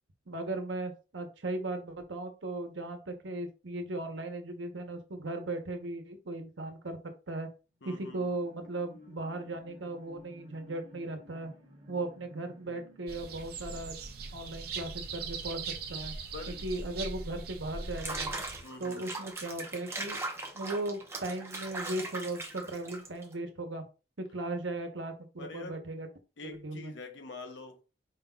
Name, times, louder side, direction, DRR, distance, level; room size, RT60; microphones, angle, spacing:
voice 1, 0.3-7.0 7.3-7.5 7.8-11.5 11.9-13.9 14.3-15.6 15.9-16.1 16.6-18.4 18.8-20.2 20.5-23.8 24.3-26.1 26.4-26.9, right 2 dB, 90° right, 1.0 m, -37 dB
voice 2, 7.8-8.3 16.3-16.6 18.6-19.1 25.4-25.8 26.4-27.8, left 3 dB, 80° left, 0.9 m, -45 dB
sound 1, 7.8-15.6 16.0-16.1, left 1 dB, 30° right, 1.1 m, -56 dB
sound 2, 13.1-18.6, right 4 dB, 55° right, 0.6 m, -40 dB
Water / Bathtub (filling or washing), 17.8-23.3, right 2 dB, 15° right, 0.7 m, -39 dB
5.0 x 2.3 x 3.8 m
head